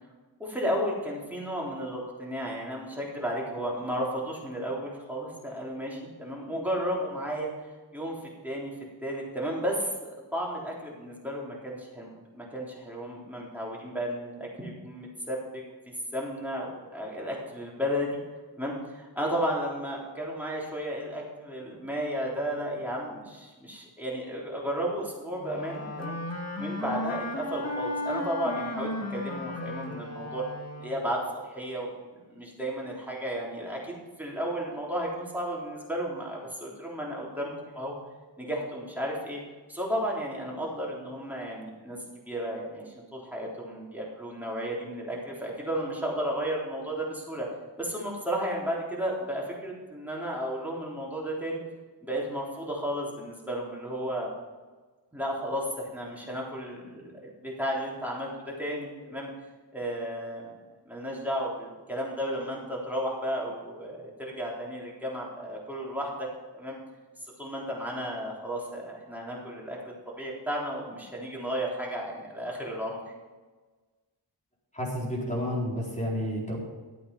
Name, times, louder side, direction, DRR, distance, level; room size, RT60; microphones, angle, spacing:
voice 1, 0.4-7.5 7.9-8.2 8.4-8.7 9.0-15.6 16.1-18.2 18.6-26.2 26.6-30.4 30.8-31.9 32.3-37.9 38.4-39.4 39.7-42.0 42.3-47.5 47.8-51.6 52.0-54.3 55.1-59.3 59.7-60.5 60.9-66.3 66.5-66.8 67.4-73.0, equal, 5° right, -4 dB, 3.8 m, -33 dB
Wind instrument woodwind instrument, 25.4-31.2, left 1 dB, 35° left, 1.8 m, -35 dB
voice 2, 74.7-76.6, equal, 15° left, -4 dB, 4.4 m, -30 dB
12.5 x 8.4 x 5.5 m, 1.3 s
wide cardioid pair, 45°, 44 cm